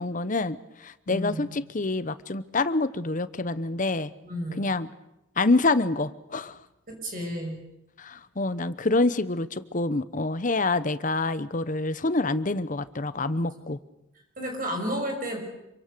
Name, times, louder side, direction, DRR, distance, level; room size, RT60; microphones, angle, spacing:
voice 1, 0.0-4.1 4.6-4.9 5.4-6.6 8.0-13.8, left 2 dB, 40° left, 14 dB, 1.0 m, -26 dB
voice 2, 1.1-1.5 4.2-4.7 6.9-7.6 13.3-13.4 14.4-15.4, equal, 45° right, 3 dB, 6.4 m, -32 dB
27.0 x 24.5 x 6.8 m, 0.90 s
head